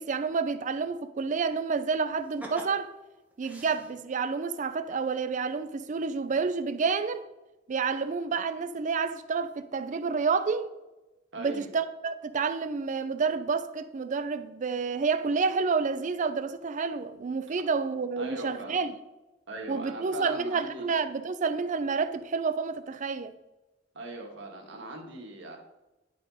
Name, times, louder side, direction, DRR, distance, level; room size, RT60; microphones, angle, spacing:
voice 1, 0.0-2.9 3.4-7.2 7.7-10.7 11.4-19.0 19.7-23.3, right 5 dB, 40° right, 0.4 m, -29 dB
sound 1, 2.2-4.3 5.7-5.8 6.3-6.7 7.1-7.2, equal, 10° right, 0.9 m, -46 dB
voice 2, 11.3-11.7 18.2-18.8 19.5-20.9 23.9-25.6, right 2 dB, 70° right, 1.5 m, -39 dB
10.5 x 4.4 x 4.1 m
head